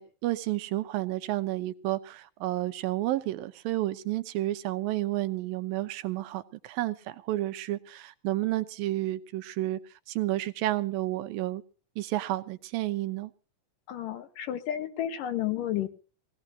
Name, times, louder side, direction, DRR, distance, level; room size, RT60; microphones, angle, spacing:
voice 1, 0.0-9.8 10.1-11.6 12.0-13.3, right 16 dB, 85° right, 2.6 m, -31 dB
voice 2, 13.9-15.9, left 11 dB, 70° left, 2.7 m, -31 dB
21.0 x 17.5 x 2.7 m
omnidirectional pair, 4.1 m